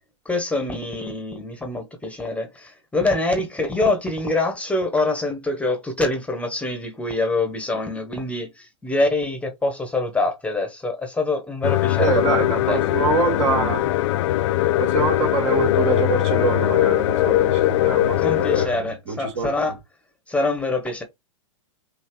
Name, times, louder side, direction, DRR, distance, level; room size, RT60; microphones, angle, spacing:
voice 1, 0.2-12.8 18.2-19.7 20.3-21.0, left 2 dB, 5° left, 1.1 m, -25 dB
sound 1, 11.6-18.7, left 15 dB, 60° left, 0.5 m, -20 dB
voice 2, 11.9-13.9 14.8-19.6, right 5 dB, 60° right, 3.0 m, -25 dB
5.6 x 2.8 x 3.1 m
hypercardioid pair, 120°, 17 cm